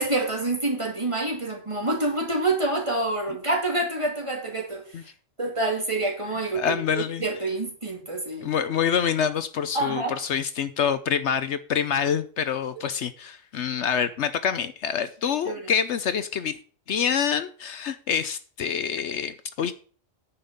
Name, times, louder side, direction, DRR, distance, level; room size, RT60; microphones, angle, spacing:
voice 1, 0.0-5.1 5.4-8.5 9.7-10.1 15.4-15.7, right 2 dB, 25° right, 2.9 m, -27 dB
voice 2, 6.5-7.2 8.4-16.6 16.9-19.7, left 7 dB, 70° left, 1.0 m, -26 dB
10.0 x 5.9 x 6.8 m
omnidirectional pair, 1.3 m